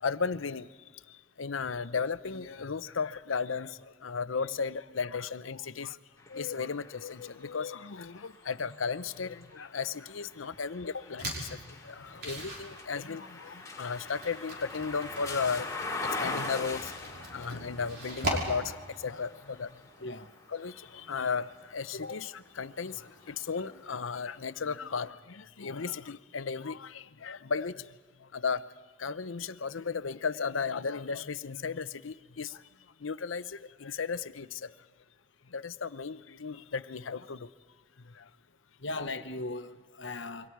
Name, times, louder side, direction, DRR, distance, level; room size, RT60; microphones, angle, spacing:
voice 1, 0.0-6.0 6.3-15.7 16.0-19.8 20.5-27.9 28.2-28.6 29.0-32.6 33.0-34.7 35.5-37.5 38.0-38.3, left 5 dB, 90° left, 14 dB, 0.7 m, -35 dB
sound 1, 6.2-22.1 22.7-23.9, left 3 dB, 15° left, 2.4 m, -43 dB
sound 2, 11.2-24.8, right 1 dB, 55° right, 5.4 m, -42 dB
voice 2, 38.8-40.5, left 2 dB, 65° left, 9 dB, 1.2 m, -38 dB
28.0 x 24.0 x 4.7 m, 1.5 s
head